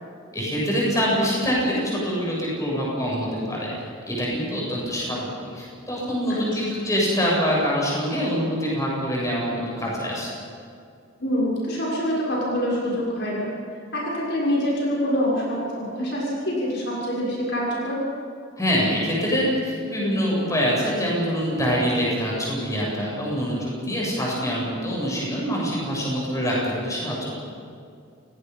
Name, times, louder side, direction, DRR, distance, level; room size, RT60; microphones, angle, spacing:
voice 1, 0.3-3.7 4.1-10.3 18.6-27.4, equal, 15° left, -4 dB, 7.9 m, -25 dB
voice 2, 11.2-13.5 13.9-18.0, equal, 55° left, -5 dB, 6.6 m, -25 dB
29.5 x 19.5 x 5.6 m, 2.3 s
head